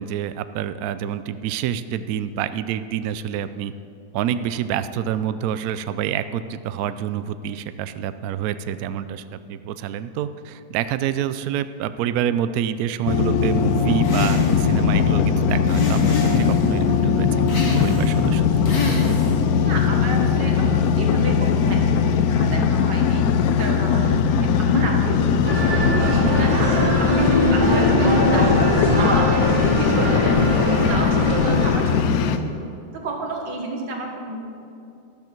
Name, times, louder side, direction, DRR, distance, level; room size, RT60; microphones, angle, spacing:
voice 1, 0.0-3.7 4.1-16.0 16.4-18.8, right 9 dB, 90° right, 12 dB, 0.7 m, -27 dB
sound 1, 13.1-32.4, left 6 dB, 70° left, 0.9 m, -20 dB
sound 2, 14.0-14.8 15.7-16.7 17.5-18.2 18.7-19.4, left 1 dB, 45° left, 1.8 m, -27 dB
voice 2, 19.5-23.3 23.6-32.4 32.9-34.4, right 2 dB, 65° right, 1 dB, 2.2 m, -29 dB
sound 3, 25.4-31.7, equal, 25° right, 1.9 m, -22 dB
13.0 x 12.0 x 4.5 m, 2.5 s
omnidirectional pair, 2.1 m